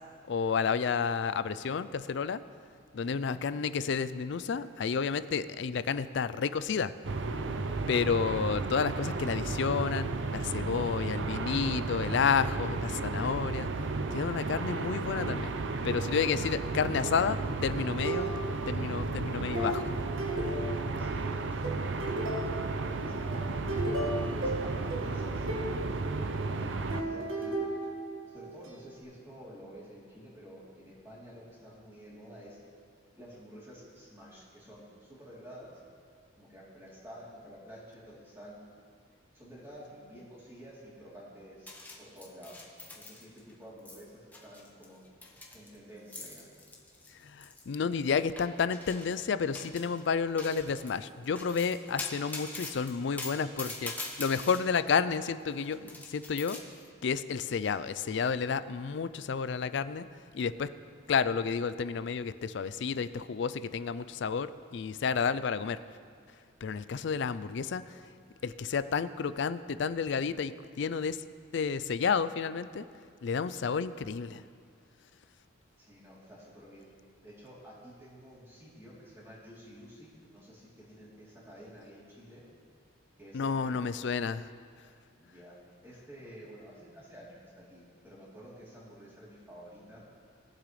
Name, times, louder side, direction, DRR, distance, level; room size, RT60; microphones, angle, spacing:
voice 1, 0.3-2.4 2.9-6.9 7.9-13.7 14.1-15.5 15.8-18.3 18.7-19.8 47.2-53.9 54.2-56.6 57.0-60.0 60.3-60.7 61.1-65.8 66.6-67.8 68.4-71.2 71.5-72.8 73.2-74.4 83.3-84.5, left 6 dB, 60° left, 15 dB, 0.4 m, -31 dB
voice 2, 3.0-3.4 20.5-23.5 24.0-27.6 28.3-32.6 33.1-35.8 36.4-38.6 39.3-45.0 45.5-46.5 75.8-76.9 77.2-82.4 83.2-83.8 85.1-85.6 85.8-90.0, equal, 15° right, -8 dB, 3.1 m, -50 dB
sound 1, 7.0-27.0, right 3 dB, 65° right, 0.6 m, -33 dB
sound 2, 18.0-18.8 19.5-21.2 21.6-22.8 23.3-25.8 26.9-28.7, right 1 dB, 85° right, 1.8 m, -35 dB
sound 3, 41.7-43.5 43.8-44.0 44.3-47.8 48.4-49.2 49.5-50.0 50.4-54.6 55.4-56.6, left 2 dB, 10° left, 1.0 m, -43 dB
20.5 x 7.7 x 3.2 m, 2.1 s
head